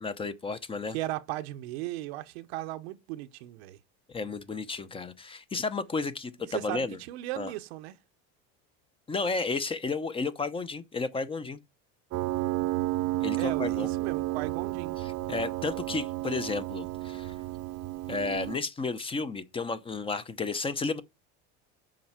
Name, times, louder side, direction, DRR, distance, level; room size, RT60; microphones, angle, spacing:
voice 1, 0.0-1.0 4.1-7.0 7.3-7.5 9.1-11.6 13.2-13.9 15.0-17.3 18.1-21.0, left 4 dB, 15° left, 0.8 m, -32 dB
voice 2, 0.9-3.8 6.5-7.9 13.4-15.0, right 16 dB, 90° right, 1.0 m, -36 dB
Piano, 12.1-18.6, right 18 dB, 55° right, 0.8 m, -32 dB
7.6 x 5.4 x 7.4 m
cardioid pair, 135°, 31 cm